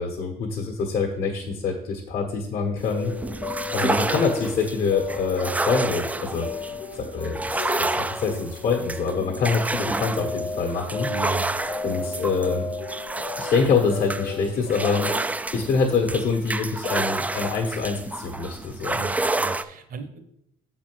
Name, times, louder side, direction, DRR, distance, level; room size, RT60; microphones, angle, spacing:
voice 1, 0.0-3.1 3.7-11.1 11.8-12.7 13.4-15.1 15.5-19.0, left 5 dB, 60° left, 1 dB, 1.3 m, -25 dB
sound 1, 2.8-19.6, right 2 dB, 10° right, 0.3 m, -30 dB
sound 2, 2.9-15.2, left 4 dB, 25° left, 0.9 m, -35 dB
voice 2, 11.1-11.6 18.9-20.2, right 5 dB, 55° right, 8 dB, 1.1 m, -34 dB
7.1 x 4.3 x 6.1 m, 0.76 s
cardioid pair, 110°, 17 cm